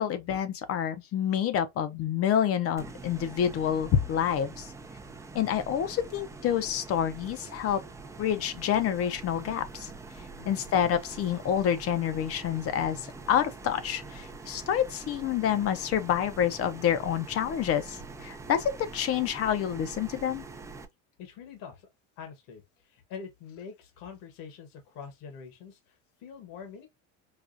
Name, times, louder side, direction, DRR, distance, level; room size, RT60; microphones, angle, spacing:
voice 1, 0.0-4.7 5.3-7.8 8.2-9.9 10.5-20.4, left 9 dB, 40° left, 0.6 m, -28 dB
sound 1, 2.8-20.9, right 3 dB, 10° right, 0.4 m, -45 dB
voice 2, 10.4-10.7 21.2-21.9 22.2-26.9, left 6 dB, 60° left, 1.2 m, -45 dB
4.8 x 2.3 x 2.5 m
supercardioid pair, 120°, 37 cm